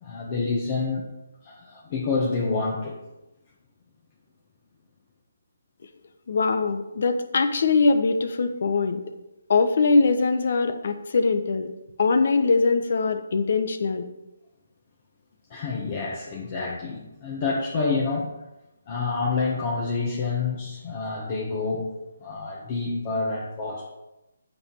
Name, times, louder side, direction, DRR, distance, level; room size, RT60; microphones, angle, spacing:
voice 1, 0.0-1.1 1.4-2.9 15.5-18.3 18.9-21.8 22.2-23.9, left 4 dB, 35° left, -3 dB, 1.6 m, -28 dB
voice 2, 6.3-9.0 9.5-11.7 12.0-14.1, left 4 dB, 60° left, 9 dB, 1.1 m, -22 dB
8.9 x 5.6 x 6.8 m, 0.96 s
figure-of-eight pair, 150°, 0 cm